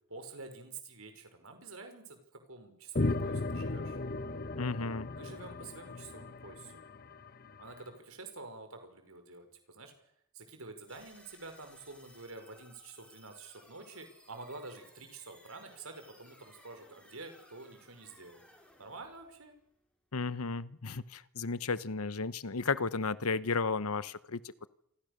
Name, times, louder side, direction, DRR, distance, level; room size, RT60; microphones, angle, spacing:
voice 1, 0.1-4.0 5.1-6.8 7.6-9.9 10.3-18.4 18.8-19.6, right 3 dB, 80° right, 7 dB, 5.4 m, -48 dB
sound 1, 2.9-7.6, left 2 dB, 45° left, 1.1 m, -36 dB
voice 2, 4.6-5.1 20.1-24.7, left 4 dB, 90° left, 16 dB, 1.0 m, -34 dB
sound 2, 10.9-20.1, left 1 dB, 5° left, 5.6 m, -61 dB
28.0 x 26.5 x 6.7 m, 0.76 s
head